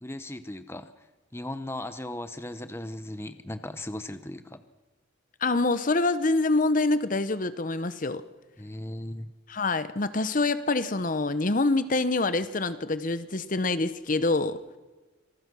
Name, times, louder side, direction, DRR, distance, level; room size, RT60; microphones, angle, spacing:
voice 1, 0.0-1.1 1.3-4.6 8.6-9.3, left 1 dB, 10° left, 11 dB, 0.8 m, -37 dB
voice 2, 5.4-8.2 9.5-14.6, left 2 dB, 40° left, 13 dB, 0.8 m, -26 dB
26.5 x 20.0 x 6.2 m, 1.3 s
head